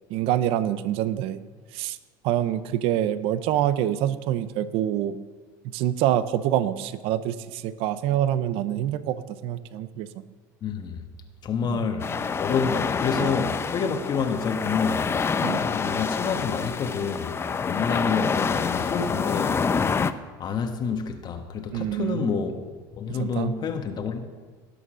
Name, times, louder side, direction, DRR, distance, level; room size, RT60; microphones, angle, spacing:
voice 1, 0.1-1.4 1.7-2.0 2.2-5.2 5.7-10.1 11.6-11.8 13.2-13.4 15.4-15.7 21.7-22.5 23.1-23.5, right 11 dB, 65° right, 0.7 m, -26 dB
voice 2, 10.6-11.0 11.4-12.1 12.4-17.3 17.6-19.6 20.4-22.6 23.0-24.2, left 6 dB, 40° left, 1.2 m, -28 dB
sound 1, 12.0-20.1, left 5 dB, 25° left, 0.7 m, -27 dB
18.5 x 6.9 x 6.2 m
supercardioid pair, 100°, 11 cm